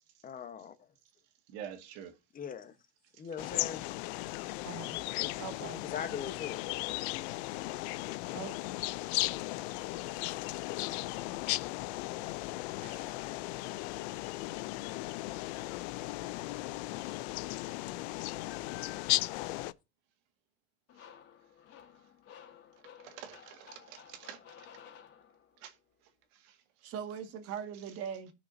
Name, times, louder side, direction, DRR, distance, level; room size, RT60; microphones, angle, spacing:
voice 1, 0.2-0.9 2.3-2.7 3.2-3.8 5.2-5.3 5.6-6.6, left 7 dB, 25° left, 1.1 m, -40 dB
voice 2, 1.5-2.2 3.1-3.3 4.4-4.6 6.7-6.8 8.1-8.2 9.8-9.9 10.3-10.5 11.6-11.7 12.3-12.4 12.7-13.1 13.9-14.2 16.0-16.2 16.6-16.8 17.3-18.5 20.9-21.1 22.0-22.1 22.7-24.7 25.6-26.9 27.7-28.0, right 9 dB, 70° right, 1.8 m, -51 dB
sound 1, 3.4-19.7, left 19 dB, 80° left, 0.6 m, -36 dB
voice 3, 4.6-5.0 5.4-5.8 8.3-8.5 26.8-28.3, right 8 dB, 45° right, 1.9 m, -40 dB
sound 2, 20.9-25.7, left 8 dB, 45° left, 2.2 m, -55 dB
18.0 x 6.1 x 2.7 m
cardioid pair, 145°, 32 cm